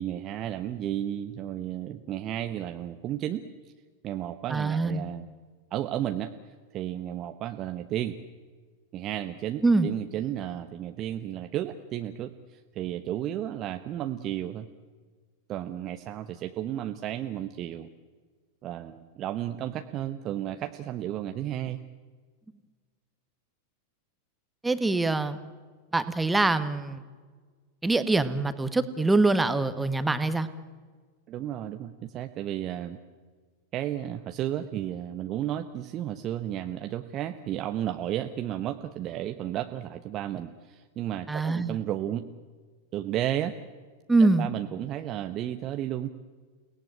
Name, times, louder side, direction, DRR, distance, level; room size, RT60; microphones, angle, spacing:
voice 1, 0.0-3.4 4.0-5.3 5.7-6.3 6.7-8.2 8.9-14.7 15.5-17.9 18.6-21.8 31.3-33.0 33.7-42.3 42.9-43.5 44.2-46.1, right 11 dB, 35° right, 7 dB, 1.1 m, -33 dB
voice 2, 4.5-5.0 9.6-9.9 24.6-25.4 25.9-27.0 27.8-30.5 41.3-41.8 44.1-44.5, right 3 dB, 10° right, 11 dB, 1.6 m, -24 dB
29.5 x 19.0 x 9.1 m, 1.5 s
figure-of-eight pair, 90°, 0 cm